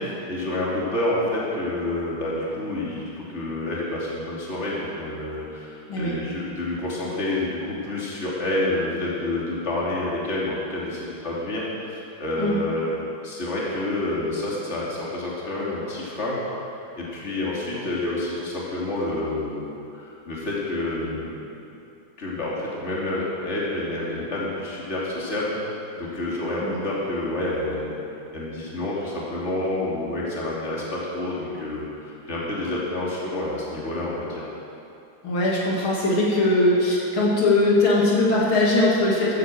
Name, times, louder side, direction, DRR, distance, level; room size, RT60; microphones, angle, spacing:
voice 1, 0.3-13.0 13.2-16.4 17.0-21.3 22.2-25.6 26.0-28.0 28.3-34.4, left 1 dB, 30° left, -6 dB, 3.2 m, -28 dB
voice 2, 35.2-39.4, left 2 dB, 80° left, -5 dB, 3.2 m, -20 dB
14.0 x 9.8 x 7.6 m, 2.7 s
omnidirectional pair, 2.3 m